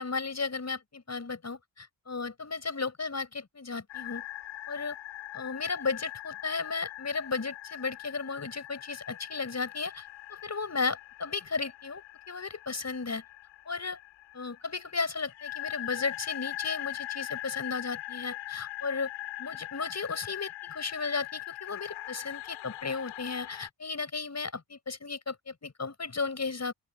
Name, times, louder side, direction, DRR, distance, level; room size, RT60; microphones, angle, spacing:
voice 1, 0.0-4.2 4.7-5.0 5.3-10.0 10.3-13.2 13.7-14.0 14.3-19.1 19.4-26.7, left 4 dB, 35° left, 6.6 m, -34 dB
sound 1, 3.9-23.7, left 16 dB, 85° left, 4.9 m, -41 dB
open air
supercardioid pair, 60°, 46 cm